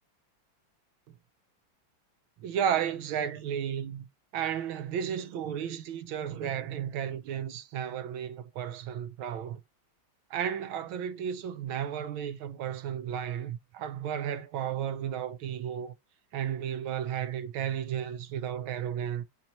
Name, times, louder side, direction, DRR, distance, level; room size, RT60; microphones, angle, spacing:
voice 1, 2.4-4.1 4.3-9.6 10.3-15.9 16.3-19.2, right 9 dB, 80° right, 1.5 m, -33 dB
7.5 x 2.9 x 5.3 m
omnidirectional pair, 2.3 m